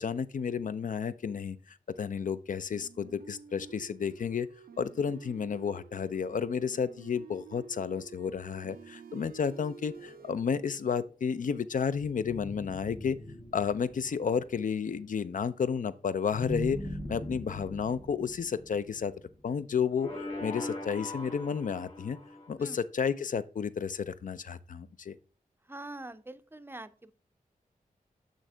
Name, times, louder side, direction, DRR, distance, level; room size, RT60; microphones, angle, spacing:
voice 1, 0.0-4.5 4.8-13.2 13.5-16.8 17.1-19.1 19.4-22.2 22.5-25.2, left 6 dB, 65° left, 0.5 m, -32 dB
sound 1, 2.7-10.3, right 7 dB, 80° right, 0.5 m, -51 dB
sound 2, 9.9-10.9 12.2-14.8 16.3-19.4 20.0-22.5, left 1 dB, 40° left, 1.8 m, -41 dB
voice 2, 25.7-27.1, right 2 dB, 15° right, 0.5 m, -44 dB
6.4 x 6.3 x 3.3 m
wide cardioid pair, 80°, 15 cm